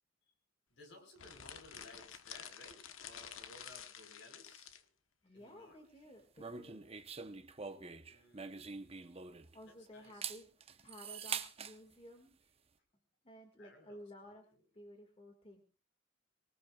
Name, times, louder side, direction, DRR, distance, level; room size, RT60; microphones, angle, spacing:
voice 1, 0.7-4.9 5.2-5.8 8.1-8.5 9.7-10.2 13.6-14.4, left 2 dB, 60° left, 5 dB, 4.6 m, -58 dB
sound 1, 1.2-4.8, left 8 dB, 80° left, 1.1 m, -50 dB
voice 2, 5.2-6.9 9.5-12.3 13.2-14.5 14.7-15.6, left 1 dB, 25° left, 4 dB, 2.0 m, -55 dB
sound 2, 6.4-9.6 10.0-11.7, right 6 dB, 30° right, 0.9 m, -44 dB
23.5 x 19.5 x 2.4 m, 0.33 s
head